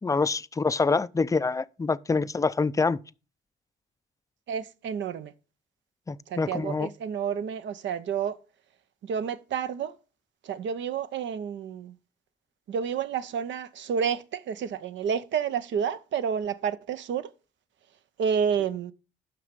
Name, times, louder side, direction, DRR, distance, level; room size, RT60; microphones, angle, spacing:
voice 1, 0.0-3.0 6.1-6.9, left 4 dB, 15° left, 0.4 m, -26 dB
voice 2, 4.5-5.3 6.3-8.4 9.0-10.0 10.4-11.9 12.7-17.3 18.2-18.9, right 7 dB, 70° right, 0.8 m, -30 dB
9.7 x 6.1 x 5.3 m
cardioid pair, 90°, 20 cm